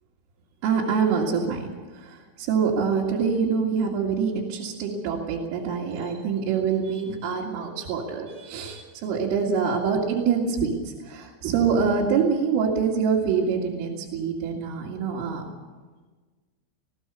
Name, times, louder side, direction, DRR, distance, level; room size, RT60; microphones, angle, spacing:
voice 1, 0.6-15.4, right 6 dB, 75° right, -4 dB, 4.6 m, -25 dB
20.0 x 16.5 x 8.1 m, 1.4 s
omnidirectional pair, 5.9 m